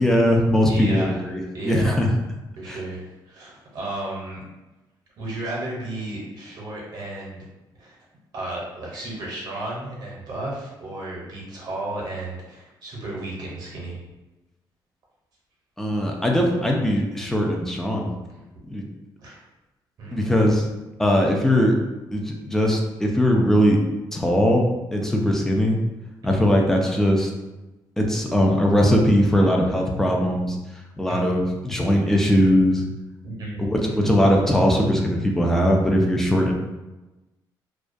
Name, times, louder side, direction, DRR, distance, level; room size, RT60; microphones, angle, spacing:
voice 1, 0.0-1.4 1.7-2.1 2.7-2.8 15.8-18.1 18.6-18.8 20.1-20.7 21.0-21.8 22.1-23.8 24.1-24.6 24.9-25.8 26.2-27.3 28.0-30.6 31.0-32.9 33.6-36.5, equal, 5° left, 0 dB, 0.3 m, -20 dB
voice 2, 0.7-1.2 1.5-2.0 2.6-4.4 5.2-7.5 7.8-8.0 8.3-14.0 19.2-19.4 20.0-20.3 26.2-26.6 31.1-31.2 33.2-33.6 33.9-34.1, right 2 dB, 60° right, -4 dB, 0.7 m, -33 dB
2.3 x 2.2 x 2.5 m, 1.1 s
cardioid pair, 145°, 8 cm